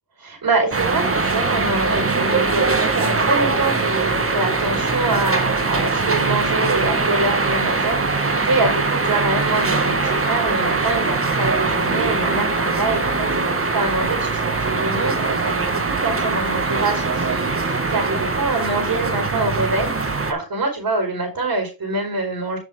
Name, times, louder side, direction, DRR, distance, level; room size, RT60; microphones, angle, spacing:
voice 1, 0.2-22.6, right 2 dB, 50° right, 2 dB, 4.7 m, -25 dB
sound 1, 0.7-20.3, right 3 dB, 30° right, 1.8 m, -21 dB
8.9 x 7.3 x 3.6 m, 0.29 s
cardioid pair, 80°, 44 cm